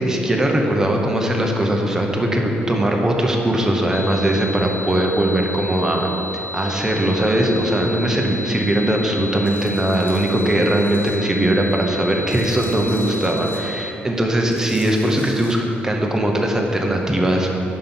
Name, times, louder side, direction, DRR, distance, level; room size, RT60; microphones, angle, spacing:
voice 1, 0.0-17.6, right 1 dB, 15° right, 1 dB, 0.9 m, -20 dB
sound 1, 0.6-3.1, left 3 dB, 30° left, 0.6 m, -36 dB
sound 2, 3.9-13.9, left 1 dB, 70° left, 0.4 m, -32 dB
Tools, 9.5-11.2 11.6-13.6 14.4-15.6, left 2 dB, 55° left, 1.1 m, -42 dB
5.3 x 5.3 x 5.9 m, 3.0 s
cardioid pair, 95°, 4 cm